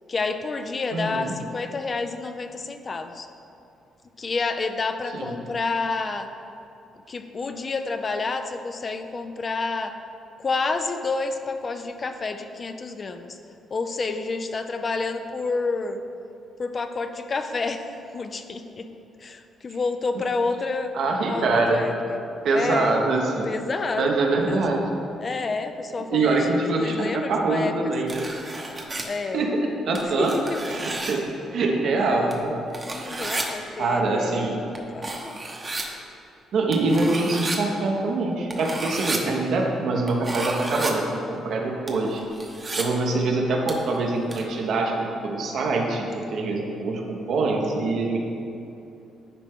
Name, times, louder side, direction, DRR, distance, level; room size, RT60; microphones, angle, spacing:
voice 1, 0.1-3.3 4.2-6.3 7.1-9.9 10.4-13.4 13.7-16.0 16.6-17.8 18.1-18.9 19.2-20.9 21.3-22.2 22.5-23.0 23.4-24.2 24.4-24.6 25.2-27.7 28.0-28.1 29.0-29.5 30.2-30.8 32.9-35.4, left 3 dB, 40° left, 7 dB, 0.4 m, -29 dB
voice 2, 0.9-1.3 5.1-5.4 20.9-21.8 22.4-23.5 24.0-24.8 26.1-28.3 29.3-29.6 29.8-30.3 30.7-30.8 31.1-31.2 31.5-32.7 33.8-34.6 36.5-42.2 42.7-48.2, right 3 dB, 70° right, 0 dB, 1.0 m, -24 dB
sound 1, 28.1-29.0 29.9-31.2 32.3-32.4 32.7-33.4 34.7-34.8 35.0-35.8 36.7-37.6 38.5-39.2 40.1-40.9 41.9-42.8 43.7-43.9 44.3-44.4, right 2 dB, 25° right, 0.9 m, -32 dB
9.8 x 4.3 x 3.6 m, 2.7 s
cardioid pair, 90°, 0 cm